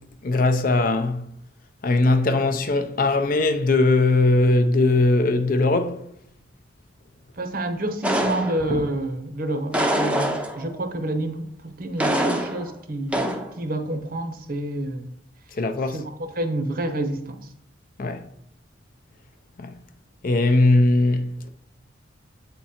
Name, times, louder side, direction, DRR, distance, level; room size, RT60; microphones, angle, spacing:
voice 1, 0.2-1.2 1.8-6.0 15.6-16.0 18.0-18.2 19.6-19.7 20.2-21.5, left 2 dB, 45° left, 0.5 m, -20 dB
voice 2, 7.3-13.3 13.6-15.1 15.9-17.5, right 1 dB, 45° right, 0.7 m, -28 dB
sound 1, 8.0-8.9 9.7-10.8 12.0-12.7 13.1-13.5, right 1 dB, 5° right, 0.5 m, -24 dB
8.1 x 3.7 x 4.3 m
head